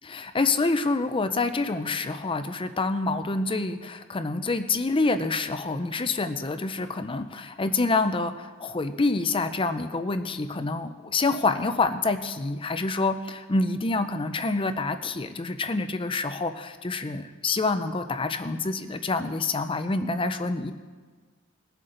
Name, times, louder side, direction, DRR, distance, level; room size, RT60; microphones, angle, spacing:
voice 1, 0.0-20.7, left 3 dB, 25° left, 9 dB, 0.5 m, -27 dB
20.5 x 7.8 x 3.9 m, 1.5 s
head